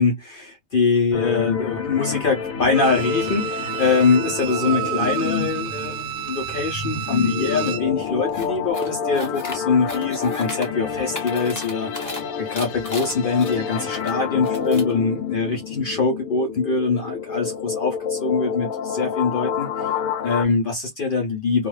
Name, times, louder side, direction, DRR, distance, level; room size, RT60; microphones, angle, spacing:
voice 1, 0.0-12.1 12.4-21.7, left 4 dB, 55° left, 0.6 m, -23 dB
sound 1, 1.1-20.4, left 7 dB, 75° left, 1.0 m, -28 dB
Bowed string instrument, 2.7-7.9 8.3-8.4, right 11 dB, 65° right, 0.7 m, -30 dB
sound 2, 8.3-8.5 8.7-9.6 9.9-10.7 11.0-12.2 12.5-14.1 14.4-14.9, left 1 dB, 15° left, 0.7 m, -35 dB
2.4 x 2.3 x 3.1 m
omnidirectional pair, 1.5 m